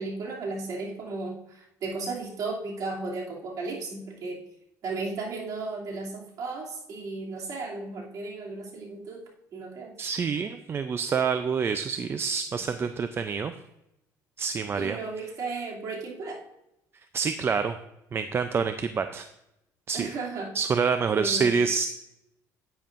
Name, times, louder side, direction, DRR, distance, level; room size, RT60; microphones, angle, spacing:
voice 1, 0.0-4.4 4.8-9.2 9.5-9.9 14.7-16.4 19.9-20.6 21.1-21.6, right 3 dB, 55° right, -2 dB, 2.8 m, -35 dB
voice 2, 10.0-13.5 14.4-15.0 17.1-17.8 18.1-19.3 19.9-20.1 20.5-21.9, right 5 dB, 35° right, 9 dB, 0.5 m, -27 dB
10.0 x 9.1 x 2.6 m, 0.84 s
cardioid pair, 105°, 7 cm